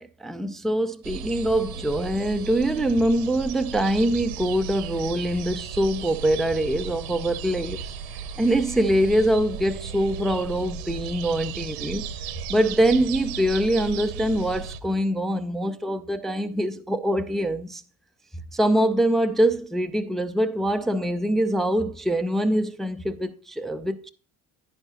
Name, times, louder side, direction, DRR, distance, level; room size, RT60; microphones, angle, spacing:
voice 1, 0.0-7.9 8.4-12.1 12.5-17.8 18.5-24.1, right 1 dB, ahead, 0.4 m, -24 dB
sound 1, 1.0-14.8, right 6 dB, 60° right, 1.0 m, -35 dB
10.5 x 9.8 x 2.7 m
figure-of-eight pair, 55°, 47 cm